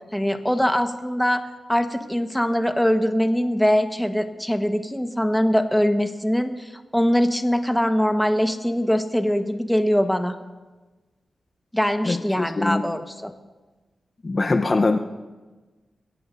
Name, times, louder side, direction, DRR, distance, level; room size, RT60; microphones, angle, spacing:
voice 1, 0.1-1.4 1.7-10.3 11.7-13.3, equal, 5° left, 6 dB, 1.3 m, -22 dB
voice 2, 12.0-12.9 14.2-15.0, left 3 dB, 45° left, 5 dB, 0.8 m, -22 dB
22.5 x 16.5 x 2.7 m, 1.2 s
cardioid pair, 55°, 0 cm